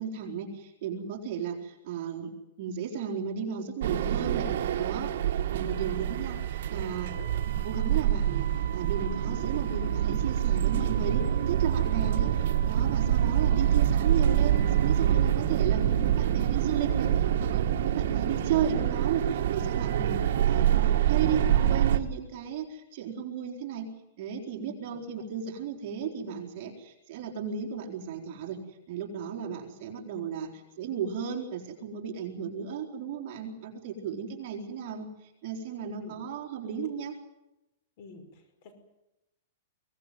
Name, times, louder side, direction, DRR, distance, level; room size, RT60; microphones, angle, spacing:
voice 1, 0.0-2.3 2.6-5.1 5.5-7.1 7.5-23.9 24.2-28.6 28.9-37.1, right 7 dB, 40° right, 0 dB, 4.3 m, -34 dB
sound 1, 3.8-22.0, right 10 dB, 60° right, 1.8 m, -26 dB
voice 2, 5.7-6.0 6.8-7.3 36.0-36.2 38.0-38.8, left 4 dB, 45° left, 10 dB, 5.3 m, -48 dB
24.0 x 18.0 x 9.4 m, 0.92 s
supercardioid pair, 165°, 0 cm